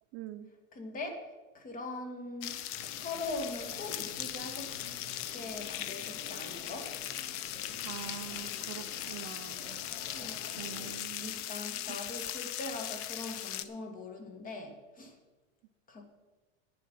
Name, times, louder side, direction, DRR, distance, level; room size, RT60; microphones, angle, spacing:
voice 1, 0.1-0.5 7.8-9.8 10.6-11.3 11.9-12.0, right 11 dB, 35° right, 12 dB, 0.5 m, -44 dB
voice 2, 0.7-2.6 2.9-4.7 5.3-7.0 10.1-10.5 11.2-15.2 15.9-16.0, left 2 dB, 25° left, 4 dB, 2.0 m, -41 dB
sound 1, 2.4-13.6, left 12 dB, 40° left, 0.6 m, -39 dB
sound 2, 2.7-11.0, left 3 dB, 60° left, 2.8 m, -50 dB
11.0 x 9.4 x 5.5 m, 1.2 s
supercardioid pair, 145°, 34 cm